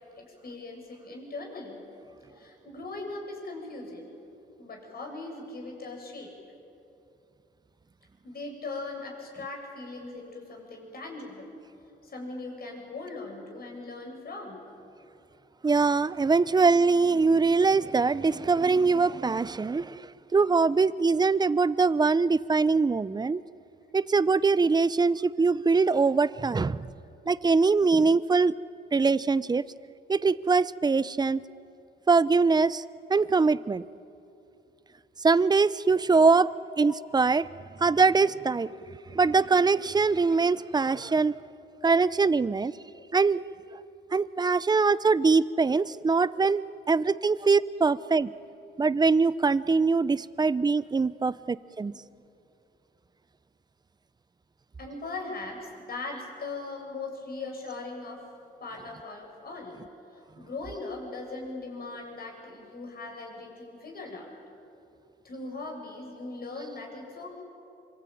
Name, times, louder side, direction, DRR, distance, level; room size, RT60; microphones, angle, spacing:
voice 1, 0.2-1.8 2.3-4.1 4.6-6.4 8.2-11.5 12.0-14.6 29.0-29.1 36.0-36.2 36.8-36.9 38.6-39.3 43.0-43.1 47.1-47.2 51.9-52.0 54.8-58.2 58.6-59.8 60.1-64.3 65.2-67.4, left 3 dB, 50° left, 1 dB, 7.9 m, -40 dB
voice 2, 15.6-20.0 20.3-23.4 23.9-26.9 27.3-28.5 28.9-29.6 30.1-31.4 32.1-32.8 33.1-33.8 35.2-37.5 37.8-38.7 39.1-41.3 41.8-42.7 43.1-43.4 44.1-48.3 48.8-51.9, right 4 dB, 20° right, 17 dB, 0.7 m, -23 dB
26.0 x 25.0 x 9.2 m, 2.7 s
cardioid pair, 90°, 20 cm